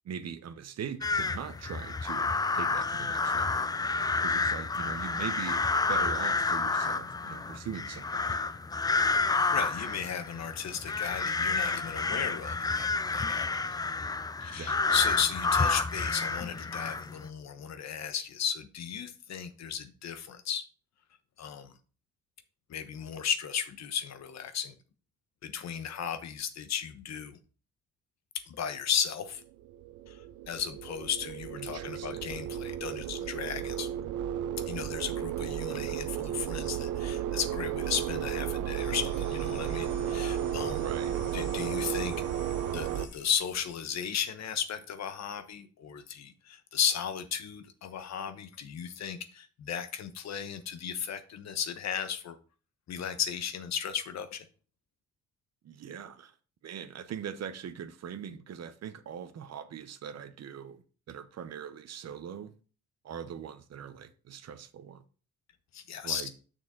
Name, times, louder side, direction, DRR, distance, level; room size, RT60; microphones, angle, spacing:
voice 1, 0.0-3.6 4.2-8.4 14.4-14.8 31.5-32.3 40.7-41.2 55.6-56.3 56.6-62.5 63.0-65.0 66.0-66.3, right 8 dB, 60° right, 0.9 m, -41 dB
sound 1, 1.0-17.3, left 4 dB, 15° left, 0.3 m, -30 dB
voice 2, 9.5-13.8 14.4-20.6 21.4-21.7 22.7-24.7 25.4-27.4 28.5-29.4 30.1-30.2 30.5-33.9 34.7-40.8 41.3-42.1 42.7-52.4 52.9-54.4 65.7-66.3, left 8 dB, 60° left, 1.0 m, -35 dB
sound 2, 29.4-43.1, right 10 dB, 85° right, 0.6 m, -33 dB
sound 3, 38.7-43.8, left 1 dB, 80° left, 2.8 m, -47 dB
6.6 x 6.3 x 3.8 m
cardioid pair, 90°, 30 cm